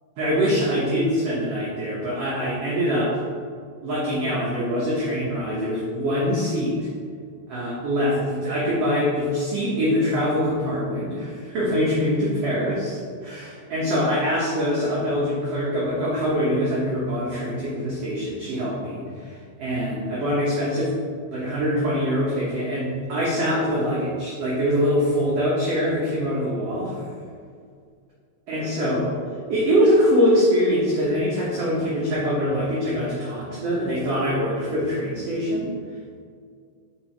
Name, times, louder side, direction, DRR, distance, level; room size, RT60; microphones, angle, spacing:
voice 1, 0.2-3.2 3.8-6.9 7.5-20.9 21.3-27.0 28.5-29.1 29.5-35.7, equal, 65° right, -7 dB, 1.6 m, -23 dB
5.4 x 4.5 x 4.5 m, 2.2 s
omnidirectional pair, 4.1 m